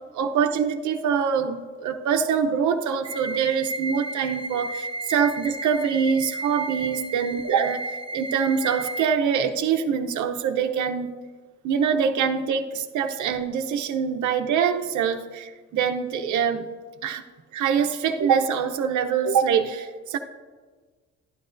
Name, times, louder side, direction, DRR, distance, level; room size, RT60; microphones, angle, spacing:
voice 1, 0.1-11.1 11.6-16.7 17.0-17.2 17.5-20.2, right 7 dB, 75° right, 5 dB, 0.7 m, -24 dB
sound 1, 3.0-9.0, right 2 dB, 20° right, 0.9 m, -34 dB
12.0 x 11.0 x 2.6 m, 1.4 s
cardioid pair, 90°, 30 cm